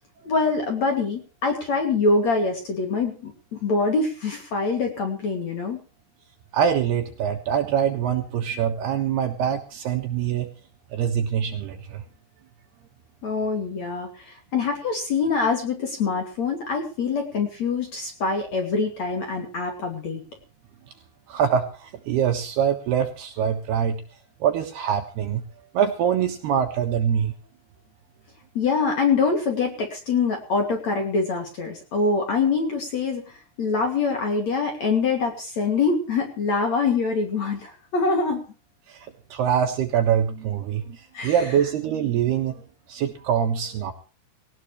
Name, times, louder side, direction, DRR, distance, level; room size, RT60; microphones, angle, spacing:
voice 1, 0.2-5.8 13.2-20.2 28.5-38.4 41.1-41.4, left 4 dB, 45° left, 3 dB, 2.9 m, -24 dB
voice 2, 6.5-10.5 10.9-12.0 21.3-24.0 24.4-25.4 25.7-27.3 38.9-43.9, right 8 dB, 65° right, 4 dB, 3.0 m, -24 dB
18.5 x 18.5 x 3.2 m, 0.34 s
omnidirectional pair, 5.8 m